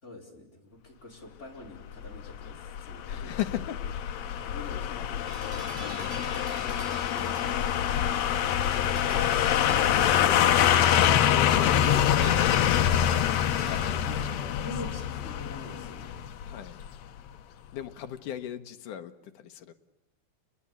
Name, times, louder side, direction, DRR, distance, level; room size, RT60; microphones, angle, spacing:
voice 1, 0.0-3.4 4.4-5.4 6.1-6.4 7.1-8.7 14.0-16.1, left 2 dB, 15° left, 0 dB, 5.1 m, -46 dB
sound 1, 2.0-17.0 17.3-17.4, left 10 dB, 80° left, 1.5 m, -25 dB
voice 2, 3.1-3.8 9.4-13.3 13.6-14.7 16.4-16.8 17.7-19.7, left 11 dB, 65° left, 7 dB, 2.4 m, -39 dB
sound 2, 5.3-13.9, right 7 dB, 85° right, 4.7 m, -47 dB
30.0 x 21.0 x 8.6 m, 0.90 s
omnidirectional pair, 4.6 m